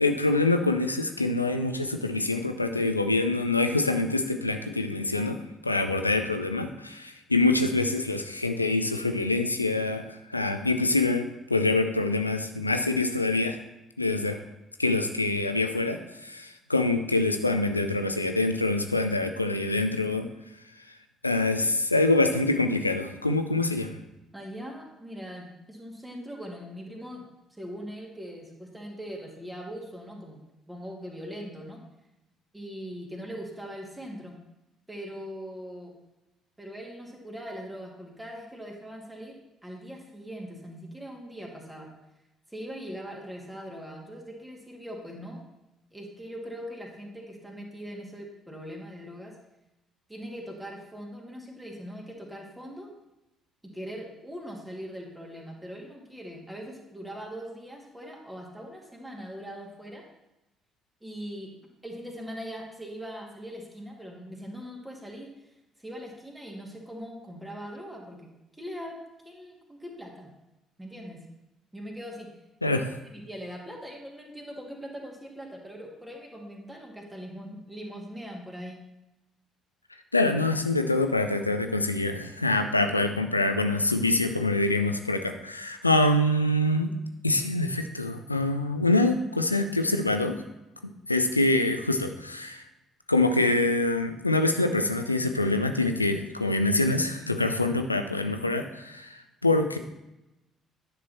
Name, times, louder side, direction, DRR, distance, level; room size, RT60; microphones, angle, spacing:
voice 1, 0.0-5.4 5.6-13.6 14.0-14.4 14.8-20.3 21.2-24.0 72.6-72.8 80.1-86.9 87.2-90.4 91.1-92.6 93.1-99.8, left 2 dB, 90° left, 7 dB, 0.5 m, -25 dB
voice 2, 24.3-30.4 30.7-31.8 32.5-34.3 34.9-35.9 36.6-41.9 42.5-45.4 45.9-49.3 50.1-52.9 53.6-60.0 61.0-61.5 61.8-68.3 68.6-69.0 69.2-70.3 70.8-71.2 71.7-72.3 73.1-78.8, equal, 10° right, 0 dB, 2.2 m, -41 dB
9.9 x 6.2 x 4.2 m, 0.94 s
figure-of-eight pair, 45°, 0 cm